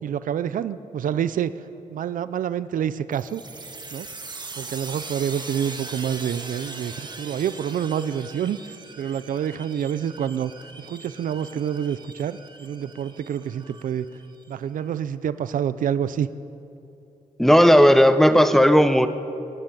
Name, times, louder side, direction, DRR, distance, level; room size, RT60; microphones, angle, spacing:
voice 1, 0.0-1.5 1.9-3.4 3.9-4.1 4.6-10.5 10.8-14.1 14.5-16.3, right 9 dB, 85° right, 15 dB, 0.7 m, -27 dB
sound 1, 3.1-14.5, right 3 dB, 35° right, 2.1 m, -40 dB
voice 2, 17.4-19.1, equal, ahead, 10 dB, 1.2 m, -14 dB
26.5 x 11.5 x 9.0 m, 2.8 s
cardioid pair, 95°, 14 cm